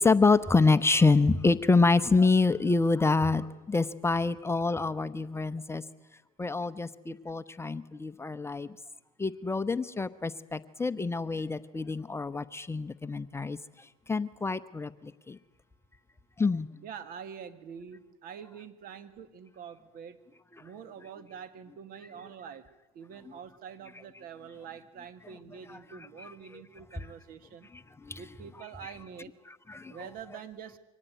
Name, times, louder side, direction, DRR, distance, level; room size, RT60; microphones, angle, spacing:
voice 1, 0.0-5.8 6.4-8.8 9.2-13.6 14.1-15.4 16.4-16.7 25.7-25.8 26.2-26.3 28.0-28.2 29.7-30.0, left 3 dB, 15° left, 12 dB, 0.9 m, -26 dB
voice 2, 16.8-20.2 20.6-22.7 22.9-27.7 28.2-29.3 29.9-30.8, right 7 dB, 55° right, 11 dB, 2.2 m, -45 dB
24.5 x 18.5 x 9.2 m, 1.1 s
supercardioid pair, 90°, 18 cm